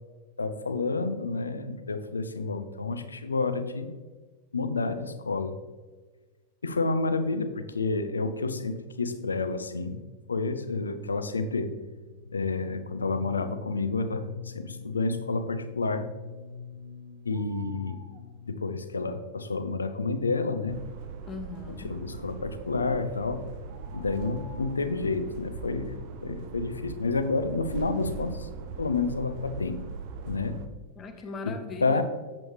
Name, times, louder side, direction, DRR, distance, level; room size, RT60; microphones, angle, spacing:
voice 1, 0.4-3.9 4.5-5.6 6.6-10.0 10.3-11.8 12.3-16.1 17.3-18.0 18.5-20.8 21.8-23.5 23.9-26.0 26.2-28.5 28.8-29.8 30.2-30.6 31.4-31.5 31.8-32.0, left 3 dB, 75° left, 10 dB, 0.6 m, -29 dB
sound 1, 11.5-19.1, left 6 dB, 90° right, 0.9 m, -44 dB
sound 2, 17.3-18.2 22.8-23.0 23.7-24.9, right 1 dB, 30° right, 1.2 m, -52 dB
sound 3, 20.7-30.7, right 5 dB, 45° right, 0.6 m, -40 dB
voice 2, 21.3-22.0 31.0-32.0, left 3 dB, 25° left, 6 dB, 1.0 m, -39 dB
7.7 x 7.5 x 3.1 m, 1.4 s
figure-of-eight pair, 90°, 0 cm